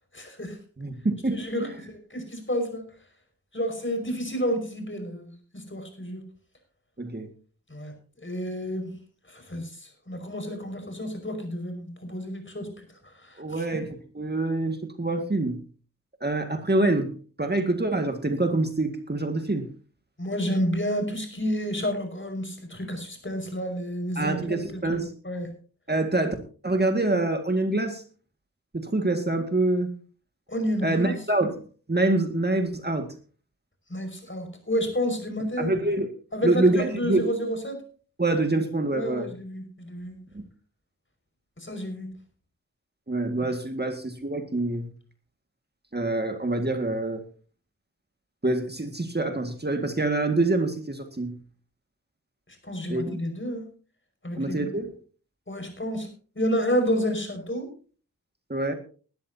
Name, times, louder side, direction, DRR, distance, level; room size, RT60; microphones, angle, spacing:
voice 1, 0.1-0.6 1.3-2.9 3.5-6.2 7.7-8.9 9.3-13.8 20.2-25.5 30.5-31.2 33.9-35.7 36.3-37.8 38.9-40.2 41.6-42.1 52.5-53.7 54.2-54.7 55.5-56.1 56.4-57.7, equal, 35° left, 5 dB, 5.4 m, -30 dB
voice 2, 0.8-1.7 7.0-7.3 13.4-13.9 14.2-15.6 16.2-17.1 17.4-19.7 24.2-25.1 25.9-26.4 26.6-28.0 28.7-29.9 30.8-31.5 31.9-33.1 35.6-36.1 36.4-37.3 38.2-39.3 40.3-40.4 43.1-44.9 45.9-47.2 48.4-51.4 52.9-53.2 54.4-54.9 58.5-58.7, right 2 dB, 30° right, 5 dB, 2.0 m, -25 dB
20.0 x 12.5 x 2.8 m, 0.39 s
wide cardioid pair, 60°, 33 cm